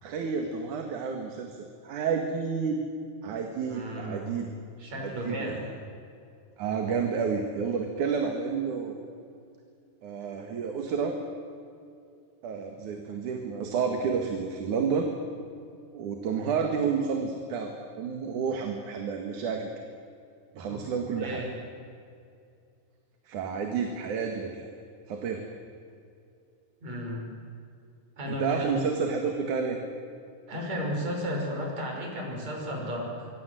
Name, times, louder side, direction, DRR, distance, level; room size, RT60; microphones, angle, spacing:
voice 1, 0.0-2.8 3.2-4.5 5.0-5.6 6.6-9.0 10.0-11.2 12.4-15.1 15.9-19.7 20.6-21.5 23.3-24.7 25.1-25.4 28.3-29.8, right 5 dB, 90° right, 4 dB, 3.3 m, -30 dB
voice 2, 3.7-4.4 4.8-5.7 20.7-20.8 21.1-21.5 26.8-27.3 28.2-28.8 30.5-33.3, equal, 65° right, 0 dB, 7.1 m, -33 dB
25.5 x 25.0 x 7.8 m, 2.4 s
omnidirectional pair, 3.4 m